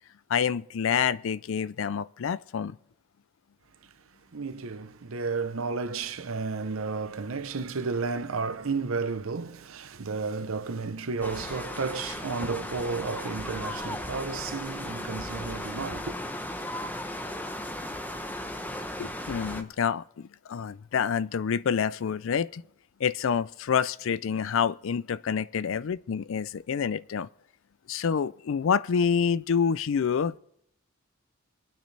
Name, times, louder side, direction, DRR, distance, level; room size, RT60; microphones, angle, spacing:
voice 1, 0.3-2.8 19.0-22.6 23.0-27.3 27.9-30.4, left 7 dB, 65° left, 0.4 m, -27 dB
voice 2, 4.3-16.2, right 4 dB, 75° right, 0.8 m, -32 dB
sound 1, 11.2-19.6, left 1 dB, 10° left, 0.8 m, -36 dB
27.0 x 9.2 x 3.3 m
head